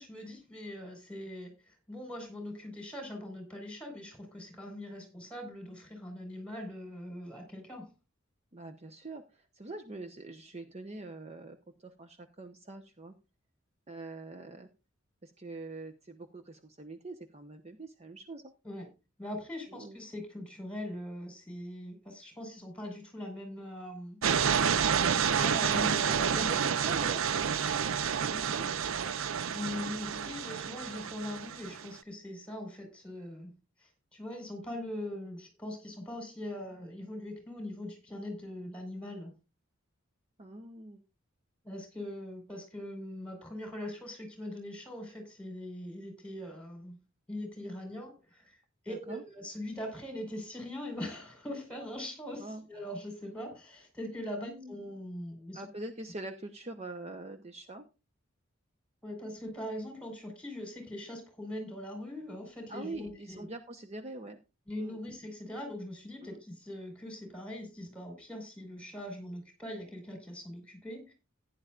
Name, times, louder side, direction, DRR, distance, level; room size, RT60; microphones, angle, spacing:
voice 1, 0.0-7.9 18.6-18.9 19.2-24.2 25.2-26.1 28.4-28.5 29.5-33.5 33.8-39.3 41.6-47.0 47.3-48.6 48.8-55.6 59.0-63.5 64.7-71.1, left 1 dB, 5° left, 4 dB, 4.7 m, -41 dB
voice 2, 8.5-13.1 13.9-14.7 15.2-18.5 19.7-20.0 26.1-27.2 28.2-28.6 40.4-41.0 48.9-49.2 52.4-52.6 54.4-54.8 55.5-57.8 62.7-64.4 64.8-65.0 66.2-66.4, right 2 dB, 35° right, 6 dB, 0.9 m, -44 dB
sound 1, 24.2-31.9, right 7 dB, 80° right, 0.6 m, -29 dB
16.0 x 10.5 x 2.5 m, 0.29 s
head